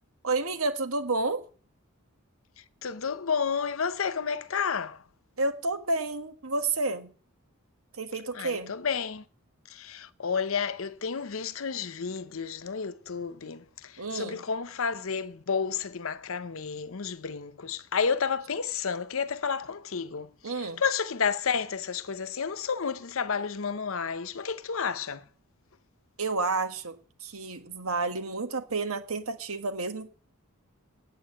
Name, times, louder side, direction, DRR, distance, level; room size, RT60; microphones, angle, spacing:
voice 1, 0.2-1.4 5.4-7.1 8.0-8.7 14.0-14.4 20.4-20.8 26.2-26.9 27.2-30.1, right 3 dB, 75° right, 1.6 m, -30 dB
voice 2, 2.8-5.0 8.3-9.2 9.7-20.3 20.6-25.2, left 6 dB, 65° left, 0.8 m, -31 dB
8.9 x 8.3 x 8.5 m
head